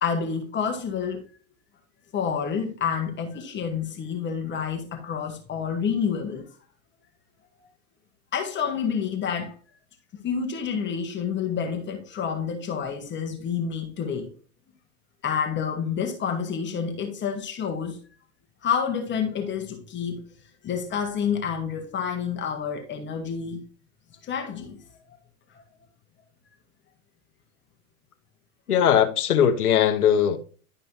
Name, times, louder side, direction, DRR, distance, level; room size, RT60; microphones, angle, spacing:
voice 1, 0.0-1.2 2.1-6.5 8.3-9.5 10.1-14.3 15.2-18.0 18.6-20.2 20.6-23.6 24.2-24.8 25.1-25.2 25.5-25.6, left 7 dB, 25° left, 1.3 m, -28 dB
voice 2, 28.7-30.4, left 9 dB, 85° left, 1.2 m, -20 dB
12.0 x 5.4 x 2.7 m
hypercardioid pair, 115°, 44 cm